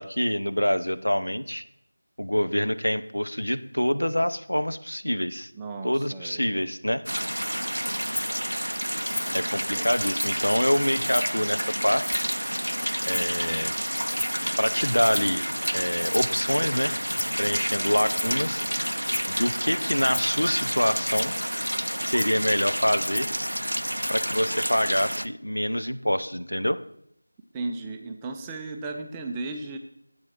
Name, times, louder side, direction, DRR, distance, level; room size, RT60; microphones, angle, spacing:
voice 1, 0.0-1.6 2.2-5.5 5.8-7.0 9.3-12.2 13.1-13.7 14.6-15.4 15.7-17.0 17.4-18.7 19.3-21.4 22.0-23.3 24.1-26.8, equal, 85° left, 11 dB, 0.7 m, -26 dB
voice 2, 5.5-6.7 9.2-9.8 17.8-18.2 27.5-29.8, right 3 dB, 10° right, 3 dB, 0.4 m, -36 dB
sound 1, 7.1-25.3, equal, 90° right, 0.4 m, -29 dB
Rattle (instrument), 8.1-8.4 9.0-9.4 9.8-10.5 11.0-11.4 12.0-12.4 13.0-13.5 14.1-14.4 15.0-15.4 16.0-16.4 17.1-17.4 18.0-18.4 19.0-19.4 20.0-20.4 21.0-21.4 22.0-22.4 23.0-23.4 24.0-24.1, left 2 dB, 50° left, 0.5 m, -35 dB
7.9 x 7.3 x 6.1 m, 0.75 s
figure-of-eight pair, 170°, 0 cm